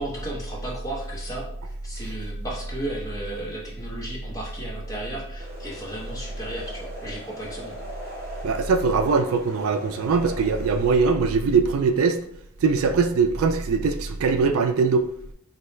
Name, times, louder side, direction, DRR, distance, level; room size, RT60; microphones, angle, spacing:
voice 1, 0.0-1.5 1.8-7.8, right 1 dB, 15° left, -4 dB, 0.9 m, -34 dB
sound 1, 5.4-11.1, equal, 45° right, 1.0 m, -40 dB
voice 2, 8.4-12.2 12.6-15.0, right 4 dB, 75° right, 8 dB, 0.4 m, -21 dB
3.9 x 2.2 x 3.2 m, 0.68 s
head